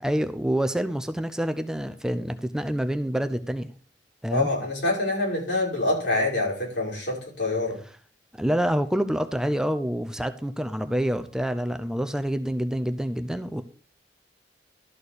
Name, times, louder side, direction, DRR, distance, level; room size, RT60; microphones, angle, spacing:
voice 1, 0.0-3.7 4.2-4.5 8.4-13.6, equal, 5° right, 9 dB, 0.5 m, -27 dB
voice 2, 4.3-7.8, left 2 dB, 75° left, -3 dB, 5.5 m, -26 dB
12.5 x 4.4 x 6.6 m, 0.41 s
head